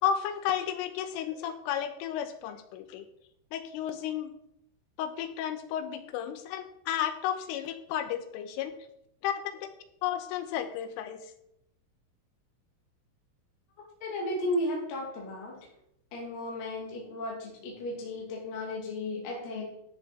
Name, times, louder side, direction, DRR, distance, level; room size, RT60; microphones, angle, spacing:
voice 1, 0.0-3.0 3.5-4.3 5.0-8.7 9.2-9.7 10.0-11.2, left 9 dB, 90° left, 8 dB, 3.5 m, -33 dB
voice 2, 14.0-15.6 16.1-19.7, left 1 dB, 50° left, -3 dB, 3.6 m, -34 dB
13.5 x 7.0 x 4.2 m, 0.78 s
omnidirectional pair, 5.6 m